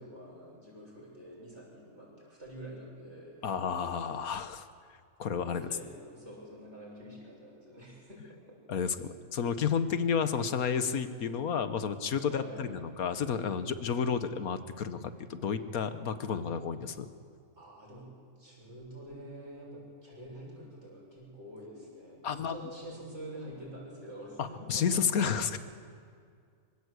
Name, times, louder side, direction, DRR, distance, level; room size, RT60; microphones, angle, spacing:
voice 1, 0.0-3.6 5.5-8.2 8.5-8.6 12.3-12.7 17.5-18.1 18.4-24.9 25.4-25.5, right 1 dB, 50° right, -4 dB, 7.4 m, -47 dB
voice 2, 3.4-4.6 5.2-5.7 8.7-15.0 15.3-17.1 22.2-22.6 24.4-25.6, left 6 dB, 85° left, 11 dB, 1.6 m, -31 dB
25.5 x 17.0 x 8.2 m, 2.2 s
omnidirectional pair, 1.5 m